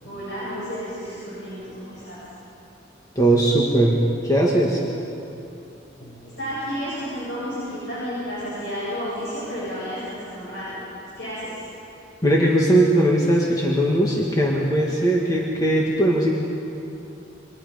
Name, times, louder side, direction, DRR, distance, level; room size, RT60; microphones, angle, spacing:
voice 1, 0.0-2.2 6.0-10.8 11.2-11.6, equal, 60° left, -10 dB, 7.8 m, -31 dB
voice 2, 3.2-4.0 4.2-4.8 12.2-16.4, right 1 dB, 20° left, -3 dB, 1.9 m, -19 dB
27.5 x 24.5 x 5.2 m, 2.8 s
head